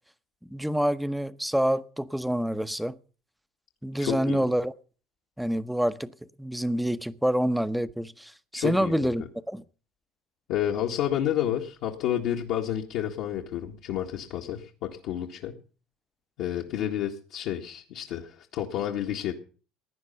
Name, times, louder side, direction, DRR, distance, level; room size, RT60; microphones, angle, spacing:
voice 1, 0.5-3.0 3.8-4.7 5.4-6.1 6.4-9.6, equal, 5° right, 0.8 m, -27 dB
voice 2, 4.0-4.4 8.5-9.1 10.5-15.6 16.4-19.3, left 11 dB, 70° left, 1.8 m, -30 dB
16.5 x 10.0 x 5.8 m
supercardioid pair, 90°, 0 cm